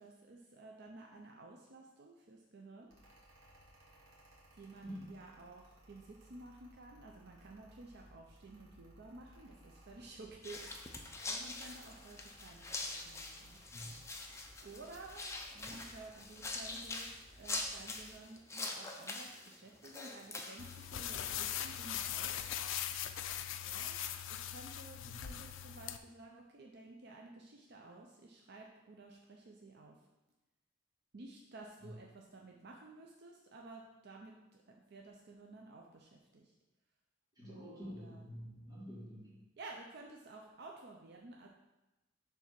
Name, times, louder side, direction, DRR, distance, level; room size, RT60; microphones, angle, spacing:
voice 1, 0.0-2.9 4.5-13.6 14.6-15.3 15.5-22.5 23.6-23.9 24.3-30.0 31.1-36.5 37.5-38.2 39.6-41.5, right 2 dB, 55° right, 0 dB, 0.6 m, -53 dB
Mechanical fan, 2.9-18.2, equal, 85° right, 1.7 m, -61 dB
sound 1, 10.4-21.8, left 3 dB, 15° left, 0.6 m, -44 dB
sound 2, 20.6-26.0, left 10 dB, 70° left, 0.4 m, -40 dB
voice 2, 25.0-25.4 31.8-31.9 37.4-39.4, equal, 20° right, -7 dB, 2.2 m, -48 dB
7.2 x 3.5 x 5.8 m, 1.0 s
head